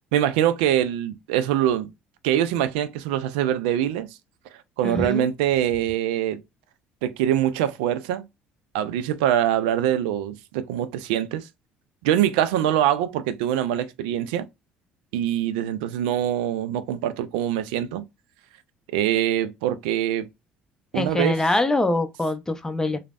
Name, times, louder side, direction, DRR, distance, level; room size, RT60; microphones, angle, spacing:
voice 1, 0.1-1.9 2.2-4.1 4.8-6.4 7.0-8.3 8.7-11.5 12.0-14.5 15.1-18.0 18.9-20.3 20.9-21.4, right 11 dB, 80° right, 0.3 m, -24 dB
voice 2, 4.8-5.3 20.9-23.0, left 2 dB, 10° left, 0.5 m, -24 dB
3.2 x 2.0 x 2.4 m
hypercardioid pair, 65°, 5 cm